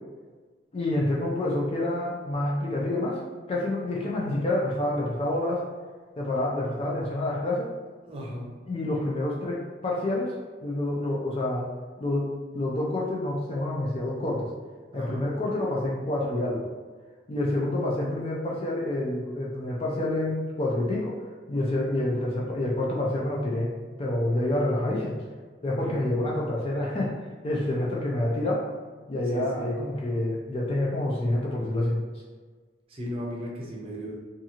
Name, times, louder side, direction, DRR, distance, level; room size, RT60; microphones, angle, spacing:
voice 1, 0.7-3.2 3.5-5.7 6.2-7.7 8.7-11.7 12.0-12.3 12.5-14.5 14.9-16.7 17.3-21.2 21.5-23.7 24.0-25.2 25.6-27.1 27.4-28.7 29.1-32.0, left 1 dB, 30° left, -4 dB, 0.3 m, -28 dB
voice 2, 8.1-8.6 14.9-15.4 25.8-26.2 29.3-29.7 32.9-34.2, equal, 30° right, -3 dB, 0.5 m, -36 dB
2.7 x 2.4 x 2.7 m, 1.5 s
head